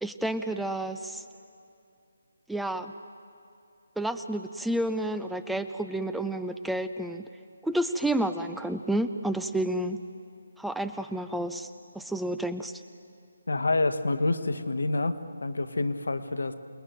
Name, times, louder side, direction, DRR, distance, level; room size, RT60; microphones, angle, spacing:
voice 1, 0.0-1.2 2.5-2.9 4.0-7.3 7.6-10.0 10.6-11.7 11.9-12.8, right 1 dB, ahead, 10 dB, 0.5 m, -30 dB
voice 2, 13.5-16.5, left 2 dB, 70° left, 8 dB, 1.4 m, -28 dB
28.0 x 19.5 x 9.1 m, 2.6 s
figure-of-eight pair, 150°, 0 cm